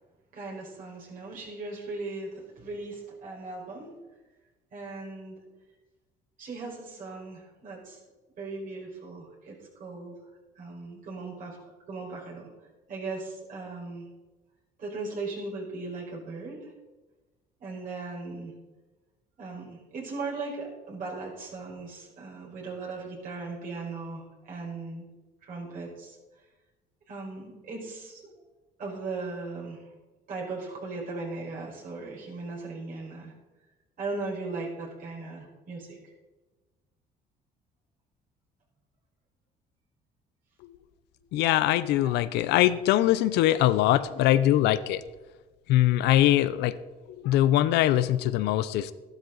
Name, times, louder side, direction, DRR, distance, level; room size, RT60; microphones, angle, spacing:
voice 1, 0.3-3.9 4.7-5.4 6.4-8.0 8.4-10.2 10.6-12.5 12.9-14.1 14.8-16.7 17.6-18.5 19.4-25.1 25.4-26.2 27.1-28.2 28.8-29.8 30.3-33.3 34.0-36.1 41.2-41.3 41.9-42.2, right 3 dB, 55° right, -3 dB, 5.0 m, -38 dB
voice 2, 41.3-45.0 45.7-46.8 47.2-48.9, left 13 dB, 85° left, 15 dB, 0.7 m, -22 dB
13.0 x 12.0 x 4.0 m, 1.2 s
cardioid pair, 110°, 17 cm